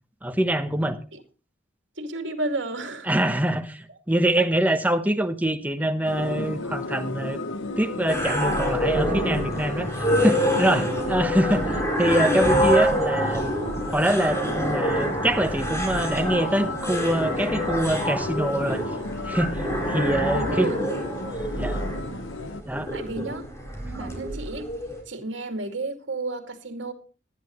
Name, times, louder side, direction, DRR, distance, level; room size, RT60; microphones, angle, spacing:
voice 1, 0.2-1.0 3.1-7.4 7.8-13.5 13.9-18.8 19.3-19.6 19.9-20.7 21.5-21.8 22.7-22.9, right 1 dB, 10° right, 8 dB, 1.1 m, -24 dB
voice 2, 2.0-3.1 19.9-20.8 22.9-23.4 24.0-24.7 25.1-26.9, right 2 dB, 75° right, 6 dB, 2.4 m, -32 dB
sound 1, 6.1-22.6, left 2 dB, 85° left, 1.1 m, -35 dB
sound 2, 8.1-25.0, equal, 15° left, 4.2 m, -26 dB
18.5 x 11.0 x 3.1 m, 0.33 s
head